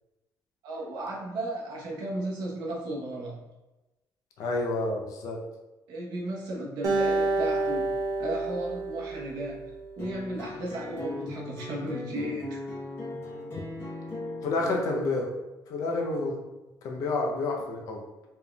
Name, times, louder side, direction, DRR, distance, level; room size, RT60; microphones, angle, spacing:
voice 1, 0.6-3.4 5.9-7.9 8.2-12.6, right 1 dB, 85° right, -3 dB, 1.0 m, -35 dB
voice 2, 4.4-5.4 14.4-15.3 15.7-16.4 16.8-18.0, left 2 dB, 60° left, 1 dB, 0.7 m, -29 dB
Acoustic guitar, 6.8-10.2, right 3 dB, 55° right, 0.8 m, -29 dB
sound 1, 10.0-15.0, left 2 dB, 35° left, 1.1 m, -38 dB
4.2 x 3.5 x 2.3 m, 1.0 s
cardioid pair, 180°, 7 cm